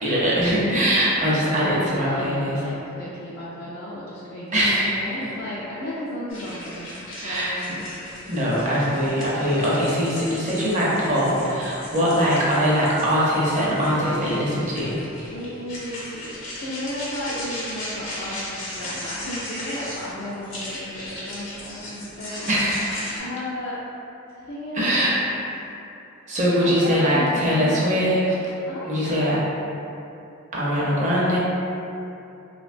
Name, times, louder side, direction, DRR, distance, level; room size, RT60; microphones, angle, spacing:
voice 1, 0.0-2.6 4.5-5.1 7.2-7.5 8.3-15.0 22.5-23.2 24.7-25.2 26.3-28.2 28.8-29.4 30.5-31.4, equal, 35° right, -7 dB, 0.5 m, -22 dB
voice 2, 1.1-7.0 7.2-7.8 15.3-16.3 16.6-22.6 23.1-23.8 24.3-25.7 26.6-28.3 28.7-29.5 30.8-31.1, left 1 dB, 50° left, -9 dB, 0.4 m, -34 dB
sound 1, 6.3-23.2, left 1 dB, 65° left, 0.8 m, -37 dB
3.0 x 2.1 x 2.5 m, 2.8 s
head